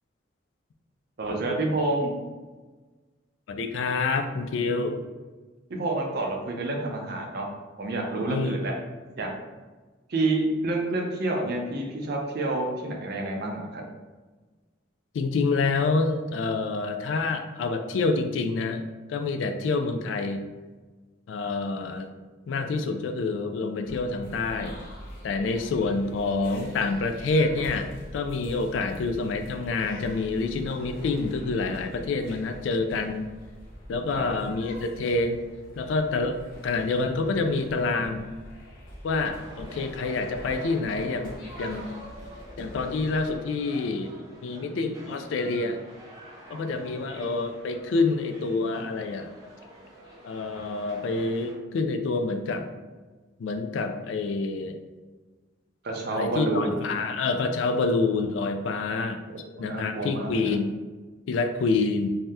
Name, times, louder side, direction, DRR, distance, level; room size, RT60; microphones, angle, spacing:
voice 1, 1.2-2.1 5.7-7.5 7.8-8.7 9.2-9.4 10.1-13.8 34.1-34.2 55.8-56.8 59.6-60.5, right 2 dB, 55° right, 1 dB, 0.5 m, -28 dB
voice 2, 3.5-5.0 8.3-8.6 15.1-18.8 19.1-20.4 21.3-22.1 22.5-24.8 25.2-33.3 33.9-35.4 35.8-36.4 36.6-38.2 39.0-41.9 42.6-44.1 44.4-45.8 46.5-49.3 50.2-52.7 53.4-54.8 56.1-59.2 59.6-60.7 61.3-62.1, left 3 dB, 75° left, 6 dB, 0.3 m, -27 dB
sound 1, 23.8-43.4, equal, 50° left, 0.7 m, -44 dB
sound 2, 39.3-51.5, right 1 dB, 20° right, 0.7 m, -46 dB
2.7 x 2.1 x 3.4 m, 1.3 s
head